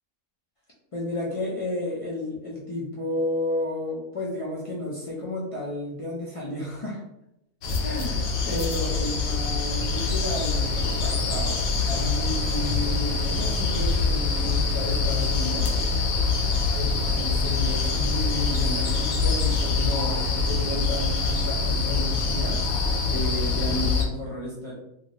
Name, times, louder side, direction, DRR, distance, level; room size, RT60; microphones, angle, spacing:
voice 1, 0.9-7.0 7.8-11.6 11.9-15.8 16.7-22.6 23.0-24.7, left 1 dB, 50° left, -5 dB, 0.4 m, -32 dB
sound 1, 7.6-24.0, left 4 dB, 80° left, 1.0 m, -25 dB
2.6 x 2.6 x 3.0 m, 0.83 s
omnidirectional pair, 1.4 m